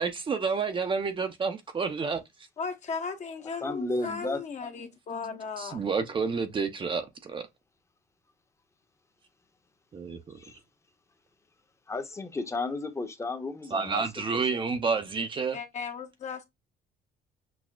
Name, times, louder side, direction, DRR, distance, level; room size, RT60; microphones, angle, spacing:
voice 1, 0.0-2.2 5.6-7.5 9.9-10.5 13.7-15.6, right 5 dB, 30° right, 0.6 m, -30 dB
voice 2, 2.6-5.8 15.5-16.4, left 5 dB, 45° left, 0.9 m, -36 dB
voice 3, 3.4-4.4 10.4-10.6 11.9-14.0 14.5-14.6, left 2 dB, 15° left, 0.8 m, -33 dB
6.0 x 2.1 x 2.3 m
cardioid pair, 110°, 17 cm